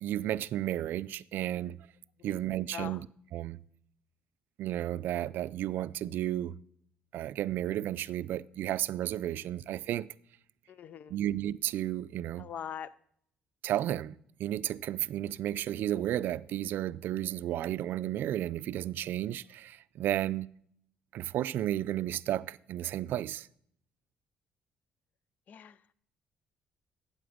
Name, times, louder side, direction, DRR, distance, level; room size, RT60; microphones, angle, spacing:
voice 1, 0.0-1.8 2.2-3.0 3.3-3.6 4.6-6.6 7.1-10.1 11.1-12.5 13.6-20.5 21.1-23.5, right 12 dB, 70° right, 0.3 m, -33 dB
voice 2, 2.7-3.0 9.3-9.4 10.7-11.2 12.4-13.0 25.5-25.9, left 8 dB, 50° left, 0.4 m, -43 dB
13.0 x 8.6 x 5.1 m
cardioid pair, 140°, 4 cm